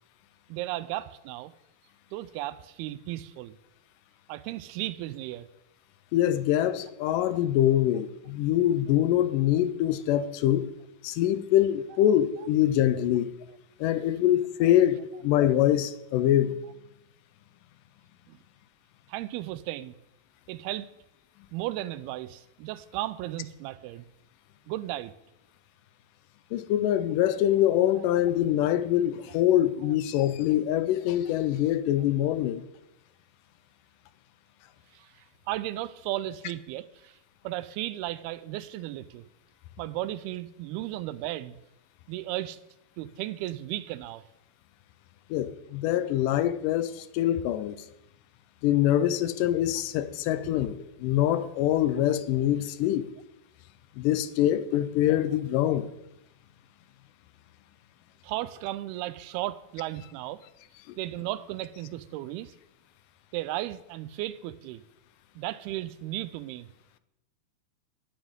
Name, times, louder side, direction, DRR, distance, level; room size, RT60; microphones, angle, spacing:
voice 1, 0.5-1.5 2.1-3.6 4.3-5.5 18.3-18.4 19.1-20.0 20.5-20.9 21.5-24.1 24.7-25.1 34.9-37.2 37.4-39.2 39.8-41.6 42.1-42.6 43.0-44.2 58.2-60.4 61.0-62.5 63.3-64.8 65.4-66.7, right 15 dB, 90° right, 2.5 m, -35 dB
voice 2, 6.1-10.7 11.0-13.3 13.8-16.6 26.5-32.6 45.3-47.8 48.6-53.1 54.0-55.9, left 12 dB, 80° left, 2.0 m, -24 dB
18.5 x 8.9 x 3.7 m
omnidirectional pair, 4.4 m